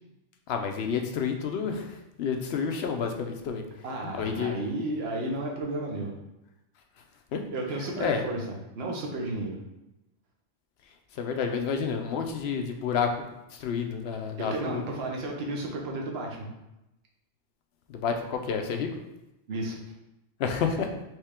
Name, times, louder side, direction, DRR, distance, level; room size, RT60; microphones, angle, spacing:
voice 1, 0.5-3.6 4.0-4.6 7.3-7.5 8.0-8.2 11.1-13.1 13.5-14.8 17.9-18.9 20.4-20.9, left 6 dB, 60° left, 4 dB, 0.8 m, -29 dB
voice 2, 3.8-6.1 7.5-9.6 14.4-16.5 19.5-19.8, right 2 dB, 55° right, 0 dB, 1.1 m, -33 dB
4.4 x 3.2 x 3.5 m, 0.93 s
omnidirectional pair, 1.3 m